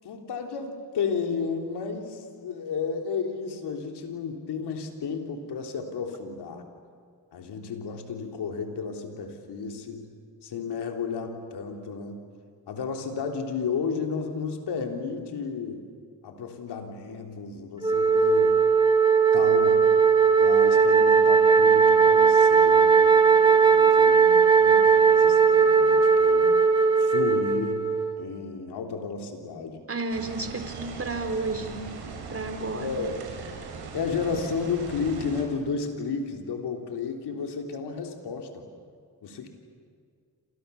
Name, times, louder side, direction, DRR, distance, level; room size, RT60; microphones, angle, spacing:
voice 1, 0.0-6.6 7.3-10.1 10.4-12.3 12.7-15.9 16.2-18.7 19.3-19.9 20.4-26.6 27.0-29.8 32.7-33.1 33.9-38.7 39.2-39.5, left 5 dB, 85° left, 3 dB, 3.6 m, -32 dB
Wind instrument woodwind instrument, 17.8-28.2, right 5 dB, 10° right, 4.2 m, -18 dB
voice 2, 29.9-31.9 32.3-32.9, right 3 dB, 35° right, 7 dB, 4.0 m, -32 dB
sound 1, 30.1-35.4, right 5 dB, 80° right, 6.4 m, -40 dB
29.0 x 28.0 x 7.1 m, 2.1 s
cardioid pair, 75°, 39 cm